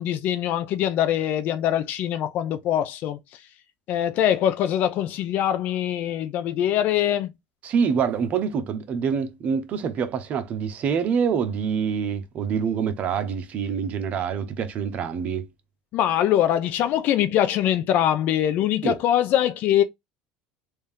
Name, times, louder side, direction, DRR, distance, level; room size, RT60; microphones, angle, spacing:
voice 1, 0.0-3.4 3.9-7.3 15.9-19.8, left 11 dB, 55° left, 0.5 m, -23 dB
voice 2, 7.6-15.5 18.8-18.9, right 6 dB, 45° right, 0.9 m, -26 dB
3.4 x 2.7 x 3.6 m
supercardioid pair, 125°, 4 cm